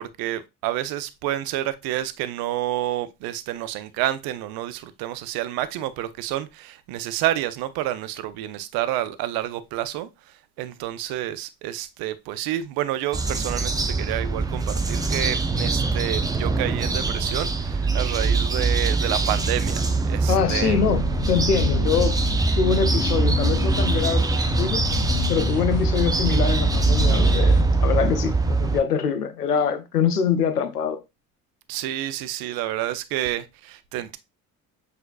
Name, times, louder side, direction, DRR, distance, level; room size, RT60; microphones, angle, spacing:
voice 1, 0.0-20.8 25.5-25.7 31.7-34.2, right 13 dB, 50° right, 0.6 m, -29 dB
sound 1, 13.1-28.8, right 3 dB, 10° right, 0.5 m, -23 dB
voice 2, 20.3-22.2 22.6-24.8 25.3-31.0, left 7 dB, 85° left, 0.6 m, -24 dB
sound 2, 20.9-28.0, left 9 dB, 35° left, 0.7 m, -29 dB
7.6 x 2.8 x 2.4 m
figure-of-eight pair, 55°, 45 cm